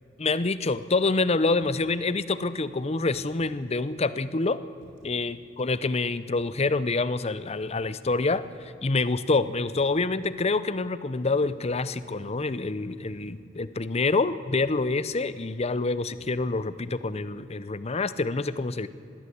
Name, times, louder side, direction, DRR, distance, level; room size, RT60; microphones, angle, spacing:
voice 1, 0.2-4.6 5.0-18.9, left 3 dB, 35° left, 15 dB, 0.7 m, -27 dB
sound 1, 1.5-2.0 2.9-3.6 4.8-5.3 6.3-6.8 8.0-8.4 9.7-10.2 11.4-11.9 13.1-13.5 14.6-15.0 16.2-16.6, equal, 75° right, 4.6 m, -54 dB
21.0 x 16.5 x 8.5 m, 2.6 s
head